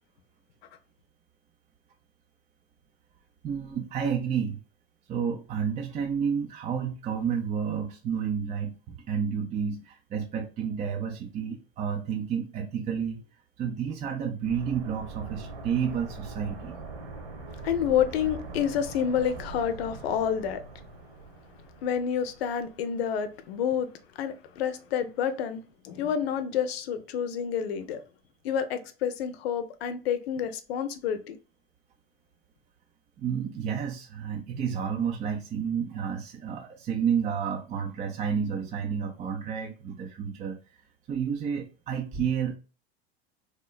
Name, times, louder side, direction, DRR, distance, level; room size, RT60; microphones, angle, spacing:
voice 1, 3.4-4.6 5.1-13.2 13.6-16.7 33.2-40.6 41.1-42.6, right 7 dB, 25° right, 0.4 m, -30 dB
sound 1, 14.4-23.2 23.4-23.5, right 3 dB, 80° right, 1.1 m, -42 dB
voice 2, 17.6-20.6 21.8-23.9 24.2-28.0 28.4-31.4, left 8 dB, 70° left, 0.6 m, -29 dB
3.1 x 2.2 x 2.2 m
hypercardioid pair, 90°, 32 cm